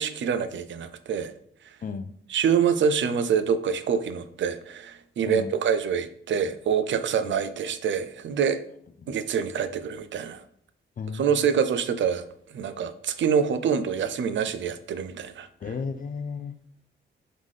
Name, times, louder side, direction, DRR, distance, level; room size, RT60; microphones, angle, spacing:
voice 1, 0.0-1.3 2.3-8.6 9.1-10.4 11.1-15.5, right 7 dB, 65° right, 12 dB, 0.4 m, -26 dB
voice 2, 1.8-2.1 5.3-5.5 7.3-7.4 9.0-9.1 11.0-11.5 15.6-16.5, left 5 dB, 40° left, 10 dB, 0.4 m, -34 dB
3.8 x 3.6 x 3.2 m, 0.67 s
cardioid pair, 65°, 21 cm